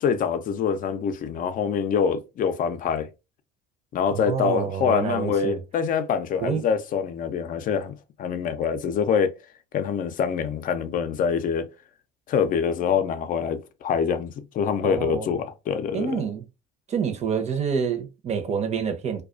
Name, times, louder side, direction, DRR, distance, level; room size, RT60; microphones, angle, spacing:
voice 1, 0.0-3.1 3.9-7.9 8.2-9.3 9.7-11.7 12.3-16.1, left 7 dB, 50° left, 0.5 m, -25 dB
voice 2, 4.1-5.6 6.4-6.6 14.8-15.3 15.9-16.4 16.9-19.2, right 6 dB, 35° right, 0.7 m, -27 dB
2.3 x 2.3 x 2.4 m
supercardioid pair, 85°, 19 cm